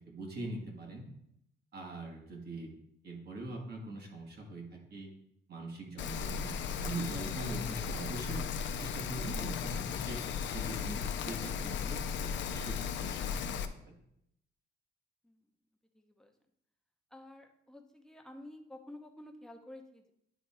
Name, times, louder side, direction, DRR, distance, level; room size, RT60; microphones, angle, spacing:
voice 1, 0.1-1.1 1.7-2.7 3.0-5.1 5.5-6.5 6.8-8.5 8.8-10.2 10.5-14.0, right 2 dB, 60° right, 0 dB, 1.7 m, -42 dB
Rain, 6.0-13.6, left 7 dB, 80° left, 0.5 m, -36 dB
voice 2, 15.9-16.3 17.1-20.1, left 1 dB, 5° left, 4 dB, 0.8 m, -51 dB
9.9 x 3.5 x 4.3 m, 0.77 s
cardioid pair, 110°, 19 cm